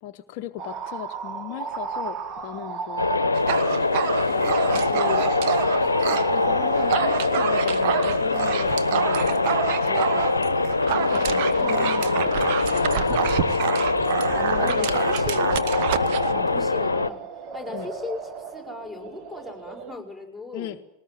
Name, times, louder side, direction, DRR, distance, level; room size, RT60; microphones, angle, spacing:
voice 1, 0.0-3.1 4.3-5.3 6.1-9.4 9.8-10.4 11.1-12.4 12.7-13.5 14.3-15.3 16.3-16.5 17.7-17.9 20.5-20.8, left 12 dB, 45° left, 8 dB, 0.8 m, -36 dB
sound 1, 0.6-19.9, right 5 dB, 30° right, 1.8 m, -34 dB
sound 2, 3.0-17.1, left 3 dB, 80° left, 0.9 m, -23 dB
Dog, 3.3-6.3 6.6-16.3, right 10 dB, 50° right, 1.2 m, -28 dB
voice 2, 11.5-12.2 14.6-15.5 16.3-17.2 17.5-20.8, left 2 dB, 5° right, 2 dB, 5.1 m, -38 dB
20.5 x 19.5 x 9.2 m, 0.89 s
figure-of-eight pair, 90°, 0 cm